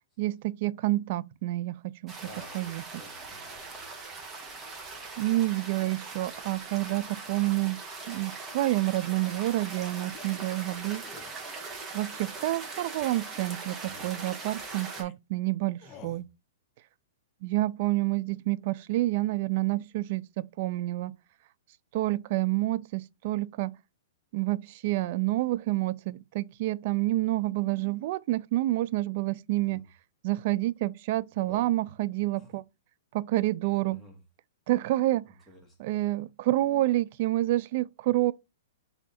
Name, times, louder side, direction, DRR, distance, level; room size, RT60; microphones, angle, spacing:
voice 1, 0.2-2.3 2.5-2.8 5.2-7.8 8.1-11.0 11.9-16.2 17.4-21.1 21.9-23.7 24.3-29.8 30.2-32.6 33.1-34.0 34.7-35.3 35.8-38.3, right 17 dB, 50° right, 0.3 m, -28 dB
sound 1, 2.1-15.0, right 3 dB, 20° right, 1.2 m, -41 dB
voice 2, 2.2-2.6 2.9-4.0 13.8-14.2 15.8-16.2 29.5-29.8 31.4-31.7 32.3-32.5 33.8-34.2 35.2-35.9, left 1 dB, ahead, 1.8 m, -52 dB
sound 2, 10.1-10.5 11.0-11.4 11.9-12.4 13.0-13.3 14.0-14.4 15.0-15.1 15.8-16.3, left 7 dB, 30° left, 0.6 m, -53 dB
4.0 x 2.7 x 4.1 m
hypercardioid pair, 130°, 0 cm